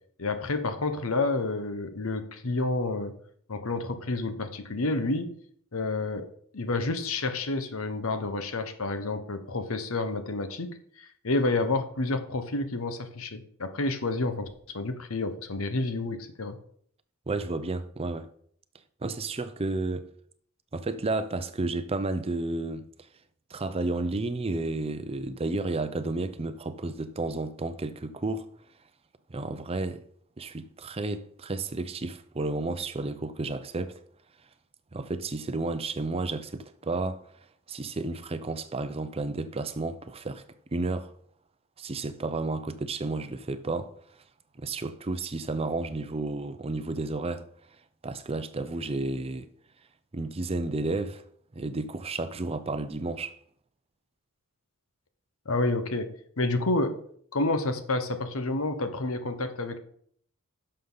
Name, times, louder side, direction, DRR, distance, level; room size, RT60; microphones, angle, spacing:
voice 1, 0.2-3.1 3.5-5.3 5.7-6.3 6.5-16.6 55.5-57.0 57.3-59.8, left 2 dB, 70° left, 1.0 m, -29 dB
voice 2, 17.3-18.3 19.0-20.1 20.7-22.8 23.5-28.5 29.3-30.0 30.4-34.0 34.9-37.2 37.7-40.4 40.7-41.1 41.8-43.9 44.6-47.5 48.0-49.5 50.1-51.2 51.5-53.4, right 2 dB, 25° right, 0.5 m, -32 dB
11.0 x 6.7 x 3.9 m
head